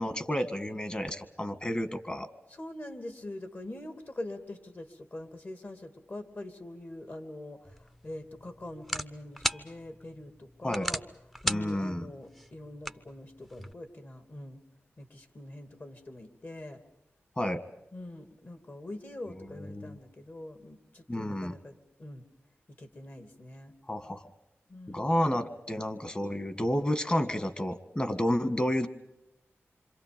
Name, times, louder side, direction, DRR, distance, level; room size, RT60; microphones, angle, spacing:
voice 1, 0.0-2.3 10.6-10.9 11.5-12.1 17.4-17.6 19.7-20.0 21.1-21.6 23.9-24.2 24.9-28.9, left 1 dB, 20° left, 10 dB, 1.8 m, -30 dB
voice 2, 2.5-11.0 11.4-14.6 15.0-16.8 17.9-22.2 22.7-23.7 24.7-25.1, left 1 dB, 45° left, 7 dB, 2.8 m, -44 dB
sound 1, 7.6-13.7, equal, 5° left, 0.8 m, -38 dB
28.0 x 26.0 x 5.3 m, 0.84 s
wide cardioid pair, 80°, 5 cm